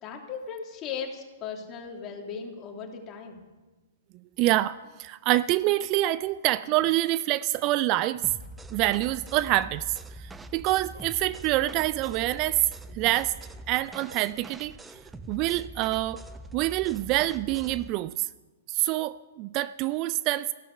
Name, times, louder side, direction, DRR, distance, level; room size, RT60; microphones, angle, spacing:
voice 1, 0.0-3.4, left 6 dB, 30° left, 1 dB, 2.9 m, -37 dB
voice 2, 4.4-8.3 8.7-12.6 12.9-13.3 13.7-14.7 15.3-16.2 16.5-18.3 18.7-20.5, right 16 dB, 35° right, 16 dB, 0.4 m, -26 dB
sound 1, 8.2-17.9, right 1 dB, 10° right, 0.7 m, -44 dB
15.5 x 12.0 x 6.7 m, 1.2 s
figure-of-eight pair, 115°, 0 cm